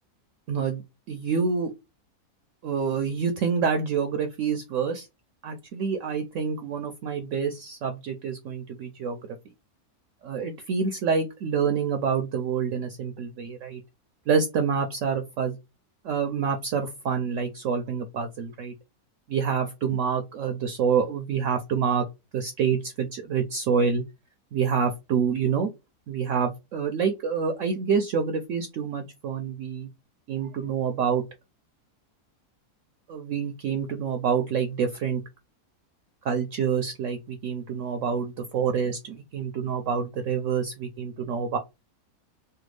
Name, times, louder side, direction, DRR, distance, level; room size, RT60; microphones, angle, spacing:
voice 1, 0.5-0.8 1.1-1.7 2.6-5.1 5.4-9.2 10.2-13.8 14.3-15.6 16.0-18.7 19.3-22.1 22.3-24.0 24.5-25.7 26.1-29.9 30.3-31.2 33.1-35.2 36.2-41.6, right 6 dB, 70° right, 6 dB, 0.8 m, -27 dB
3.3 x 2.3 x 3.1 m, 0.23 s
omnidirectional pair, 1.6 m